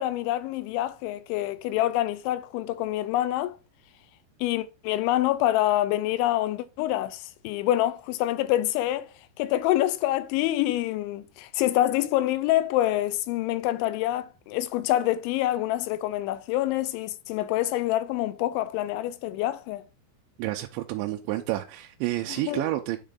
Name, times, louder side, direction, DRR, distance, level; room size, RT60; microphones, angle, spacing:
voice 1, 0.0-3.6 4.4-9.1 9.4-19.8 22.3-22.6, left 14 dB, 85° left, 3.1 m, -26 dB
voice 2, 20.4-23.0, right 16 dB, 85° right, 2.9 m, -29 dB
10.0 x 3.7 x 3.7 m
omnidirectional pair, 5.3 m